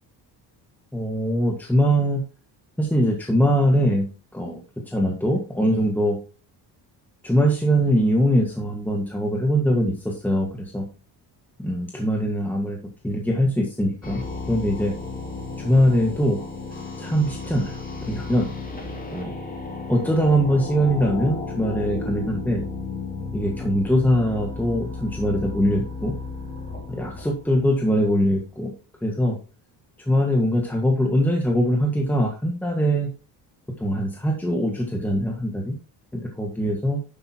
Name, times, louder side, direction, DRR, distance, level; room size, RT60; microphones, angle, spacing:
voice 1, 0.9-2.2 2.8-4.1 4.3-4.6 4.9-6.2 7.2-10.8 11.6-12.8 13.0-14.2 14.5-14.9 15.6-16.4 17.0-18.5 19.1-19.3 19.9-22.6 23.3-26.1 26.9-28.7 29.0-29.4 30.0-33.1 33.8-35.7 36.1-37.0, equal, 5° left, 0 dB, 1.7 m, -22 dB
sound 1, 14.0-28.1, left 3 dB, 20° left, 2.7 m, -34 dB
11.0 x 7.9 x 3.0 m, 0.34 s
cardioid pair, 145°, 42 cm